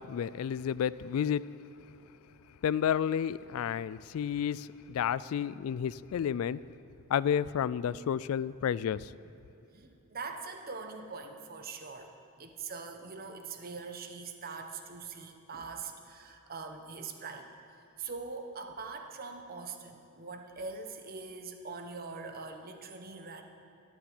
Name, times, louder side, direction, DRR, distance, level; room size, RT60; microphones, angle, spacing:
voice 1, 0.0-1.5 2.6-6.6 7.1-9.1, left 8 dB, 75° left, 18 dB, 0.3 m, -31 dB
voice 2, 9.7-23.4, right 4 dB, 45° right, 5 dB, 1.1 m, -43 dB
13.0 x 7.4 x 9.4 m, 2.8 s
head